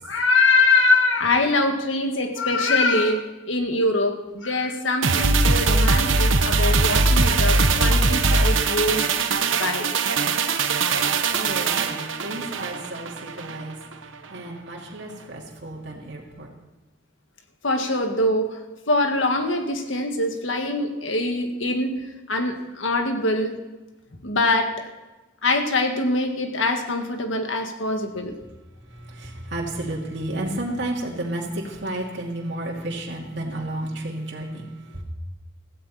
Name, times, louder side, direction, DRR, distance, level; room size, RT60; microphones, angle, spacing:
voice 1, 0.0-9.0 9.5-9.9 17.6-18.6 18.9-23.6 24.2-24.9 25.4-28.4, left 2 dB, 80° left, 5 dB, 1.8 m, -23 dB
sound 1, 5.0-13.6 13.9-14.0, right 3 dB, 85° right, 1.0 m, -21 dB
voice 2, 11.3-16.5 28.8-35.0, right 1 dB, 60° right, -2 dB, 2.5 m, -32 dB
15.5 x 15.5 x 4.3 m, 1.1 s
head